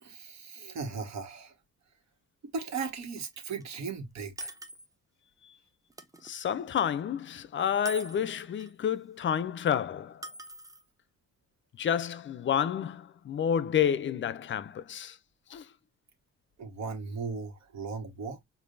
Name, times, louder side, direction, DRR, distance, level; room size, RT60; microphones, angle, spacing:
voice 1, 0.0-1.5 2.5-4.5 16.6-18.4, right 5 dB, 65° right, 1.5 m, -37 dB
sound 1, 3.3-3.4 3.6-3.7 4.4-4.9 5.9-6.3 7.9-8.7 10.2-10.8, right 1 dB, 10° right, 0.6 m, -42 dB
voice 2, 6.2-10.2 11.8-15.1 15.5-15.6, left 8 dB, 40° left, 0.5 m, -29 dB
4.9 x 2.6 x 2.6 m
cardioid pair, 90°, 30 cm